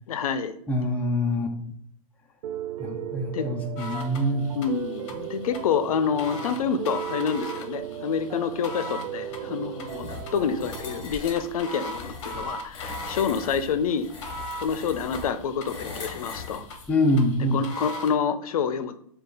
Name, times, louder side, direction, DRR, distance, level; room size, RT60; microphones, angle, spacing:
voice 1, 0.1-0.5 3.3-3.5 4.5-14.1 14.6-16.7 17.5-19.0, left 6 dB, 80° left, 11 dB, 0.5 m, -27 dB
voice 2, 0.7-1.6 2.8-4.5 16.9-17.6, left 1 dB, 10° left, 2 dB, 0.4 m, -25 dB
Piano, 2.4-11.2, right 10 dB, 90° right, 0.4 m, -37 dB
sound 1, 3.8-18.2, equal, 55° left, 0.8 m, -40 dB
sound 2, 9.9-16.9, left 4 dB, 30° left, 1.3 m, -40 dB
5.2 x 2.4 x 3.9 m, 0.66 s
hypercardioid pair, 140°, 18 cm